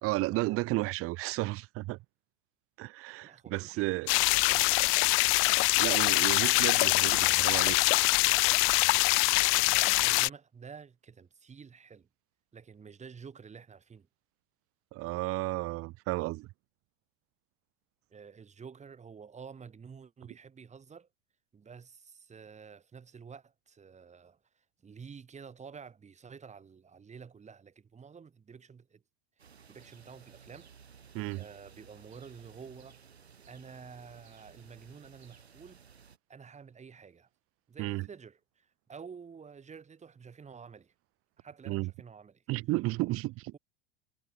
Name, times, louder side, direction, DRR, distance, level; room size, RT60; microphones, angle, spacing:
voice 1, 0.0-2.0 2.8-4.1 5.8-7.8 14.9-16.5 31.1-31.4 37.8-38.1 41.7-41.9 42.5-43.5, right 20 dB, 45° right, 2.3 m, -33 dB
voice 2, 3.2-4.7 9.7-12.1 12.5-14.1 18.1-21.1 21.5-29.0 29.4-30.7 31.3-33.0 33.5-35.8 36.3-37.3 37.7-40.9 41.4-42.4, right 6 dB, 20° right, 7.6 m, -50 dB
sound 1, 4.1-10.3, left 28 dB, 40° left, 0.6 m, -24 dB
sound 2, 29.4-36.2, right 6 dB, 80° right, 4.6 m, -56 dB
figure-of-eight pair, 85°, 31 cm